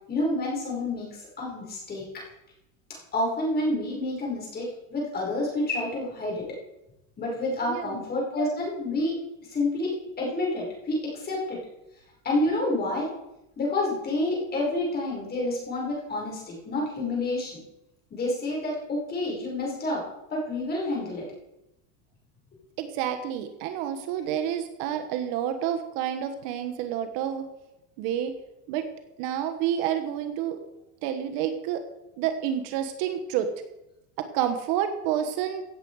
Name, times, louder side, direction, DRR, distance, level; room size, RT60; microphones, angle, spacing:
voice 1, 0.1-2.2 3.1-6.5 7.2-9.2 9.4-11.6 12.2-13.1 13.6-17.6 18.1-20.0 20.3-21.3, left 2 dB, 25° left, -3 dB, 5.1 m, -29 dB
voice 2, 7.7-8.0 22.8-27.5 28.0-28.3 28.7-28.8 29.2-30.6 31.0-31.8 32.2-33.5 34.2-35.7, right 10 dB, 55° right, 7 dB, 1.3 m, -29 dB
16.0 x 7.7 x 4.8 m, 0.90 s
supercardioid pair, 145°, 40 cm